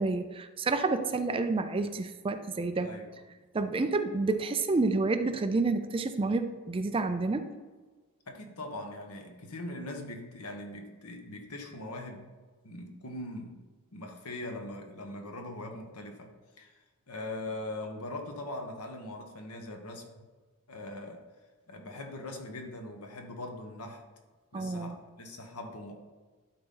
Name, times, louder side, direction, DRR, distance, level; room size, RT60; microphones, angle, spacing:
voice 1, 0.0-2.9 3.5-7.5 24.5-25.0, right 3 dB, 25° right, 9 dB, 0.4 m, -29 dB
voice 2, 2.8-3.1 8.3-12.3 12.6-13.6 13.9-16.8 17.1-20.3 20.7-21.2 21.7-24.0 24.5-26.0, left 1 dB, 85° left, 3 dB, 1.2 m, -41 dB
12.0 x 4.0 x 3.9 m, 1.3 s
head